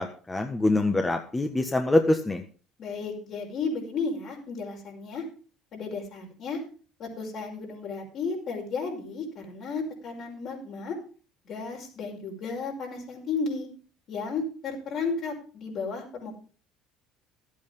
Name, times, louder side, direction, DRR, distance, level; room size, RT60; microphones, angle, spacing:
voice 1, 0.0-2.4, left 2 dB, 20° left, 5 dB, 1.3 m, -24 dB
voice 2, 2.8-5.2 5.7-6.6 7.0-11.0 11.5-13.7 14.1-16.4, left 4 dB, 60° left, 0 dB, 5.3 m, -33 dB
12.5 x 8.6 x 5.3 m, 0.38 s
supercardioid pair, 75°, 0 cm